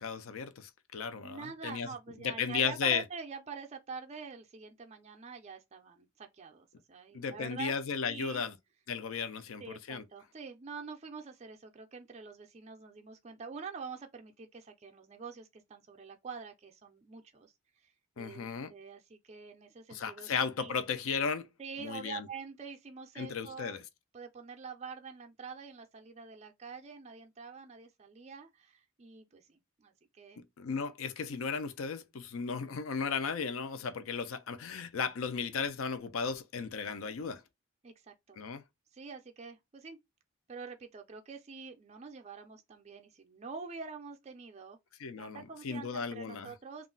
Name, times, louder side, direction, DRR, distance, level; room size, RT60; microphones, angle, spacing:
voice 1, 0.0-1.9 2.2-3.0 7.1-8.5 8.9-10.0 18.2-18.7 19.9-21.5 21.8-22.2 23.2-23.8 30.4-37.4 38.4-38.6 45.0-46.5, left 6 dB, 70° left, 0.4 m, -35 dB
voice 2, 1.2-7.7 8.1-8.4 9.6-17.5 17.8-20.3 20.6-20.7 21.6-23.8 24.1-30.4 37.8-38.4 38.9-40.0 40.5-44.8 45.2-46.9, right 5 dB, 30° right, 0.4 m, -46 dB
2.4 x 2.0 x 3.8 m
head